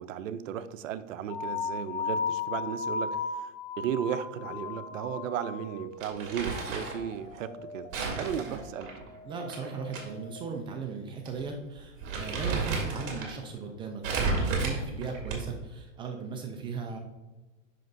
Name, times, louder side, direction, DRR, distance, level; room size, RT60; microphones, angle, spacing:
voice 1, 0.0-7.9 8.2-8.9, right 9 dB, 80° right, 12 dB, 0.6 m, -35 dB
sound 1, 1.3-5.9, left 5 dB, 60° left, 1.1 m, -34 dB
sound 2, 4.5-10.4, left 2 dB, 25° left, 0.7 m, -47 dB
Crumpling crinkling, 6.0-7.0 7.9-10.0 10.4-10.5 11.3-11.4 11.8-13.3 14.0-15.6, right 4 dB, 40° right, 2.1 m, -32 dB
voice 2, 9.2-17.0, right 5 dB, 15° right, 3 dB, 0.3 m, -37 dB
7.5 x 6.0 x 2.6 m, 1.1 s
hypercardioid pair, 125°, 38 cm